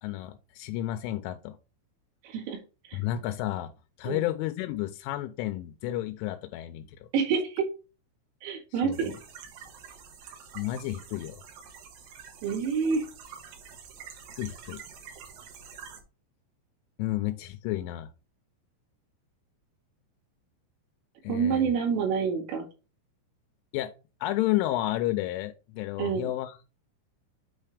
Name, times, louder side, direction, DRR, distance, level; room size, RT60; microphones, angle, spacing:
voice 1, 0.0-1.6 2.9-3.7 4.0-7.1 8.8-9.0 10.6-11.4 14.4-14.8 17.0-18.1 21.2-21.7 23.7-23.9 24.2-26.6, left 14 dB, 85° left, 7 dB, 3.0 m, -31 dB
voice 2, 2.2-2.6 2.9-3.0 4.1-4.3 7.1-7.7 8.4-9.1 12.4-13.0 21.3-22.7 26.0-26.3, right 6 dB, 85° right, -2 dB, 4.7 m, -27 dB
sound 1, 8.9-16.0, right 6 dB, 70° right, 2.4 m, -47 dB
8.8 x 3.3 x 4.9 m, 0.32 s
omnidirectional pair, 5.6 m